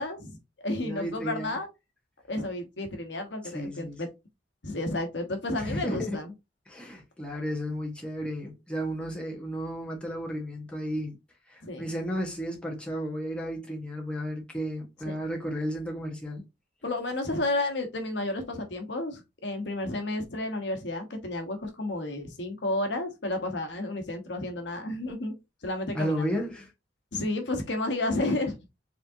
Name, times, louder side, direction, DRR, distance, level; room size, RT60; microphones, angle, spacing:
voice 1, 0.0-1.7 2.3-4.1 4.6-6.3 11.6-11.8 15.0-15.1 16.8-25.4 25.6-26.3 27.1-28.5, left 2 dB, 75° left, 1.2 m, -31 dB
voice 2, 0.8-1.6 3.5-4.0 5.6-6.2 6.7-11.2 11.5-16.4 25.9-26.7, equal, 5° left, 1.4 m, -33 dB
4.9 x 3.7 x 2.7 m
head